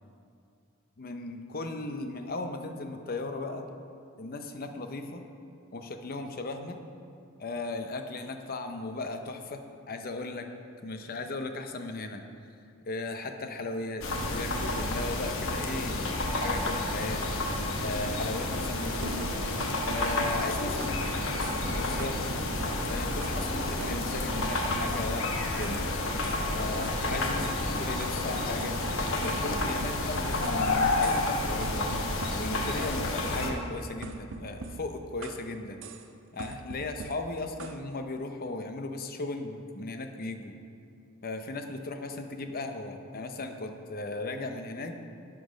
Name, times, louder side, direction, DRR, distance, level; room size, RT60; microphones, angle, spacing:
voice 1, 1.0-3.7 4.2-5.2 5.7-6.8 7.4-10.5 10.8-12.2 12.9-17.3 17.8-19.3 19.9-21.0 21.7-22.2 22.9-25.8 26.5-28.7 29.2-31.9 32.4-35.8 36.3-40.5 41.2-44.9, left 2 dB, 45° left, 6 dB, 0.7 m, -36 dB
sound 1, 14.0-33.5, left 2 dB, 65° left, 1.0 m, -30 dB
sound 2, 19.0-21.1 21.4-21.7 22.0-23.5 23.8-25.8 26.2-26.4 26.8-28.2 28.6-30.7 31.0-31.3 31.6-33.0 33.4-35.5 35.8-36.1 36.4-37.8, right 3 dB, 60° right, 0.5 m, -43 dB
11.5 x 5.9 x 5.0 m, 2.4 s
head